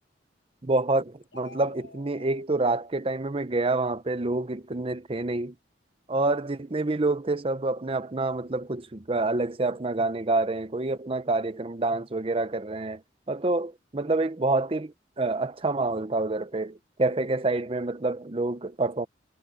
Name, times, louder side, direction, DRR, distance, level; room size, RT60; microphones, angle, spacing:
voice 1, 0.6-5.5 6.1-13.0 13.3-19.1, right 2 dB, 30° right, 0.8 m, -27 dB
sound 1, 1.2-2.4, left 3 dB, 85° left, 6.2 m, -49 dB
head